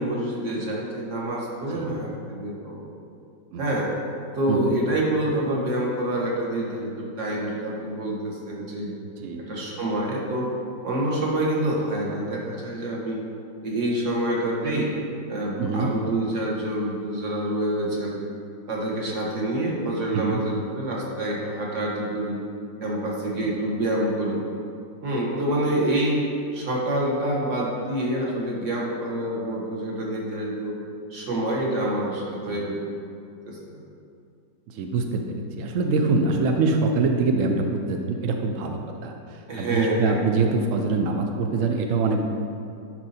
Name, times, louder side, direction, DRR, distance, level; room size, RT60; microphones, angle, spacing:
voice 1, 0.0-2.9 3.6-3.9 4.3-8.9 9.4-10.5 10.8-13.2 13.6-14.9 15.3-18.2 18.7-22.4 22.8-24.4 25.0-26.2 26.5-30.7 31.1-32.8 33.5-33.8 39.5-40.3, right 1 dB, 45° right, -3 dB, 1.5 m, -27 dB
voice 2, 9.0-9.4 15.6-15.9 20.1-20.4 23.4-23.5 32.5-32.7 34.7-42.3, right 3 dB, 80° right, 3 dB, 0.7 m, -24 dB
11.0 x 4.5 x 4.2 m, 2.5 s
omnidirectional pair, 2.1 m